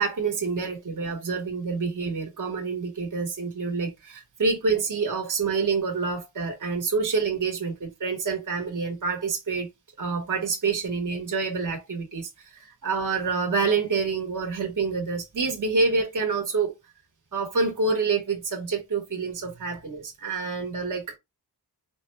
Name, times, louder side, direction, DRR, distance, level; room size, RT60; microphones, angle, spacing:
voice 1, 0.0-9.7 10.0-16.7 17.3-21.2, right 4 dB, 50° right, 1.4 m, -27 dB
5.2 x 2.2 x 3.2 m
wide cardioid pair, 140°, 39 cm